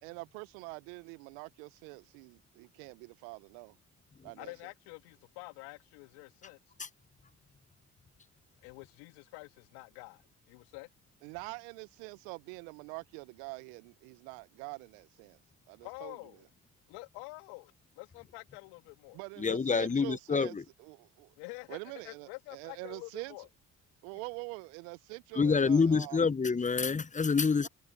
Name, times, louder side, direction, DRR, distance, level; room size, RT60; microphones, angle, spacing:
voice 1, 0.0-3.8 4.2-4.5 11.2-15.4 15.7-16.2 19.1-21.3 21.7-23.4 24.0-26.2 27.6-27.7, right 31 dB, 75° right, 0.9 m, -45 dB
voice 2, 4.4-6.6 8.6-10.9 15.8-16.5 16.9-19.2 21.4-21.8 22.0-23.5, left 27 dB, 75° left, 2.1 m, -47 dB
voice 3, 19.4-20.6 25.3-27.7, left 5 dB, 20° left, 1.0 m, -27 dB
hypercardioid pair, 50°, 40 cm